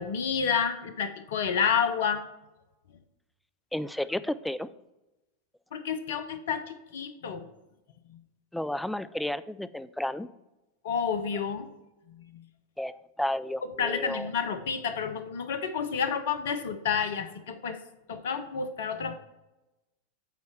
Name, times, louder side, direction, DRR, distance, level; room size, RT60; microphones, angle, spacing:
voice 1, 0.0-2.2 5.7-7.5 10.8-11.7 12.3-12.4 13.8-17.8 18.1-19.1, left 6 dB, 65° left, 10 dB, 0.8 m, -29 dB
voice 2, 3.7-4.7 8.5-10.3 12.8-14.3, left 1 dB, 5° left, 15 dB, 0.4 m, -32 dB
8.2 x 4.1 x 6.5 m, 0.99 s
figure-of-eight pair, 90°, 0 cm